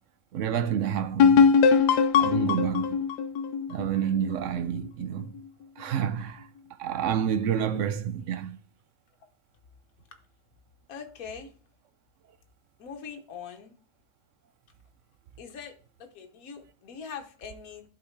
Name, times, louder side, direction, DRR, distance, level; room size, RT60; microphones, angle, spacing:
voice 1, 0.3-1.5 2.2-3.0 3.7-5.3 5.8-6.5 6.8-8.6, right 9 dB, 65° right, 0.8 m, -29 dB
sound 1, 1.2-4.8, left 6 dB, 80° left, 1.2 m, -21 dB
voice 2, 10.9-11.5 12.8-13.7 15.4-15.7 16.0-17.8, left 6 dB, 60° left, 1.5 m, -42 dB
11.5 x 4.0 x 3.3 m
omnidirectional pair, 1.7 m